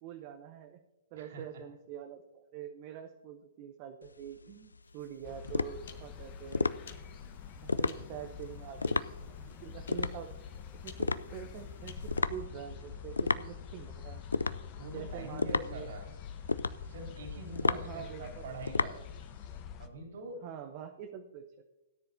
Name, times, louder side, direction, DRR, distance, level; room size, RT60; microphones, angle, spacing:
voice 1, 0.0-0.8 1.1-6.7 7.6-10.5 10.8-14.2 14.8-15.9 17.6-18.4 18.7-19.0 20.4-21.6, right 9 dB, 35° right, 5 dB, 0.8 m, -46 dB
sound 1, 4.0-19.6, left 3 dB, 75° left, 0.4 m, -34 dB
sound 2, 4.8-12.2, left 5 dB, 55° left, 1.4 m, -52 dB
sound 3, 5.2-19.9, left 7 dB, 30° left, 0.9 m, -46 dB
voice 2, 14.8-16.1 16.8-19.0 19.8-20.4, right 2 dB, 50° right, 2 dB, 2.9 m, -44 dB
17.5 x 9.8 x 2.7 m, 1.1 s
figure-of-eight pair, 115°, 0 cm